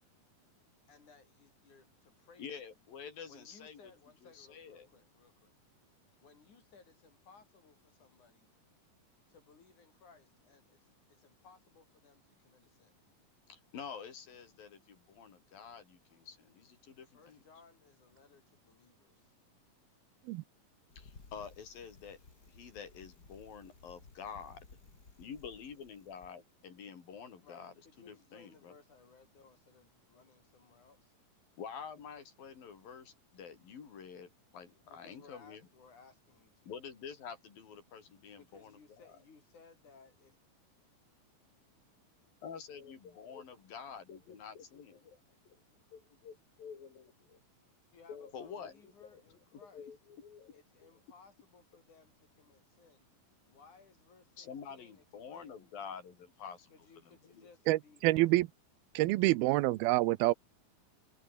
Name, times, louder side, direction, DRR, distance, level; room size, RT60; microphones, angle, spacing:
voice 1, 0.9-2.8 3.3-5.5 6.2-8.5 9.3-13.0 17.1-19.3 27.4-31.1 34.7-36.7 38.4-40.4 47.9-49.9 50.5-53.1 53.4-55.5 56.7-58.4, left 4 dB, 55° left, 6.4 m, -61 dB
voice 2, 2.4-3.8 4.3-4.9 13.5-17.4 21.0-22.2 22.5-24.6 25.2-28.7 31.6-35.6 36.7-38.8 42.4-45.2 45.5-45.6 45.9-47.4 48.1-49.2 49.7-50.6 54.4-56.7 57.1-57.5, left 6 dB, 70° left, 5.3 m, -48 dB
Bicycle, 20.9-26.3, left 4 dB, 25° left, 3.7 m, -58 dB
voice 3, 57.7-58.5 59.0-60.3, right 18 dB, 85° right, 2.6 m, -27 dB
omnidirectional pair, 4.3 m